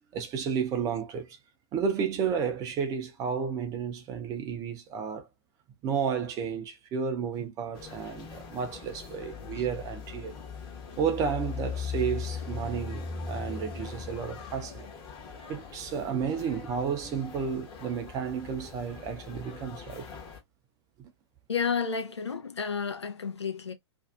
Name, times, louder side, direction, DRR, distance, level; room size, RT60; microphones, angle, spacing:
voice 1, 0.1-1.4 1.7-5.3 5.8-10.3 11.0-14.8 15.5-20.1 21.0-21.1, right 7 dB, 25° right, 0.6 m, -32 dB
sound 1, 7.7-20.4, left 5 dB, 30° left, 0.9 m, -40 dB
voice 2, 21.5-23.7, left 6 dB, 75° left, 0.6 m, -31 dB
2.6 x 2.4 x 2.4 m
figure-of-eight pair, 105°, 14 cm